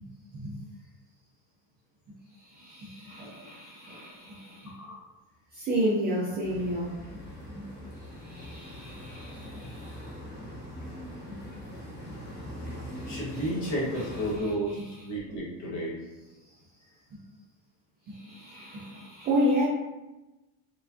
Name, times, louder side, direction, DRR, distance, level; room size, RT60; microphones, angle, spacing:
voice 1, 2.4-4.8 5.5-7.0 7.5-7.7 8.1-10.1 11.3-11.4 13.1-14.1 14.4-15.1 16.4-16.5 17.1-17.2 18.1-19.6, equal, 20° right, -6 dB, 0.4 m, -32 dB
voice 2, 4.6-5.0 13.1-16.0, right 1 dB, 40° left, -4 dB, 1.4 m, -32 dB
sound 1, 6.4-14.4, equal, 25° left, 1.0 m, -41 dB
4.7 x 3.3 x 2.6 m, 1.0 s
cardioid pair, 170°, 45 cm